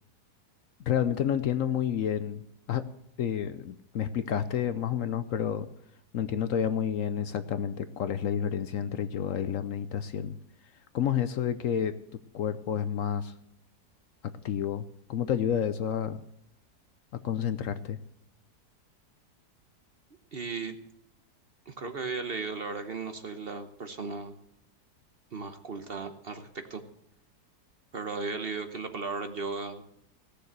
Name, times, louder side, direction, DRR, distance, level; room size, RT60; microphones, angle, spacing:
voice 1, 0.8-2.4 2.7-2.8 3.2-5.7 6.1-10.4 10.9-11.9 12.3-13.3 14.4-16.2 17.1-18.0, left 9 dB, 65° left, 12 dB, 0.9 m, -29 dB
voice 2, 20.3-20.8 21.7-24.3 25.3-26.8 27.9-29.8, right 4 dB, 45° right, 8 dB, 1.0 m, -36 dB
17.5 x 6.7 x 7.9 m, 0.74 s
omnidirectional pair, 1.7 m